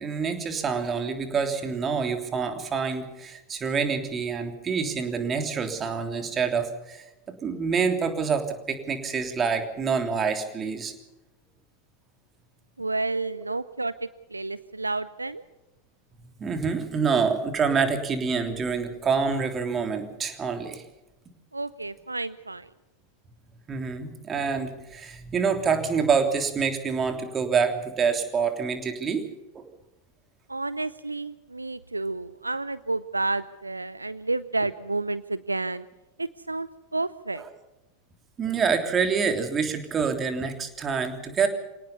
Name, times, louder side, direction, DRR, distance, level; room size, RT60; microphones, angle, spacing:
voice 1, 0.0-7.0 7.4-10.9 16.4-20.8 23.7-29.3 29.5-29.7 37.3-37.5 38.4-41.5, right 5 dB, 25° right, 6 dB, 3.3 m, -26 dB
voice 2, 12.8-15.4 21.5-22.7 30.5-35.8 36.2-37.4, right 2 dB, 85° right, 17 dB, 0.6 m, -30 dB
25.0 x 18.5 x 5.7 m, 0.99 s
figure-of-eight pair, 85°, 0 cm